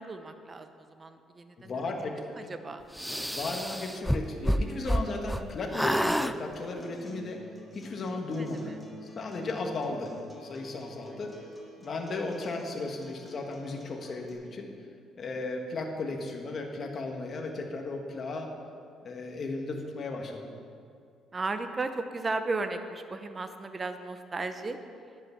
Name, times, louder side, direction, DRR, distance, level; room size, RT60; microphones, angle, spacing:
voice 1, 0.0-1.8 2.2-2.8 4.5-5.1 8.1-8.7 9.3-9.5 21.3-24.8, right 3 dB, 25° right, 8 dB, 0.8 m, -36 dB
voice 2, 1.6-2.1 3.3-7.4 7.7-8.7 9.1-10.1 10.4-11.4 11.8-14.8 15.1-18.5 19.0-20.5, left 3 dB, 40° left, 2 dB, 1.6 m, -35 dB
sound 1, 3.0-5.4 5.7-6.3, equal, ahead, 0.4 m, -28 dB
Acoustic guitar, 6.3-14.3, left 1 dB, 15° left, 2.2 m, -49 dB
11.0 x 9.2 x 6.0 m, 2.4 s
cardioid pair, 115°, 0 cm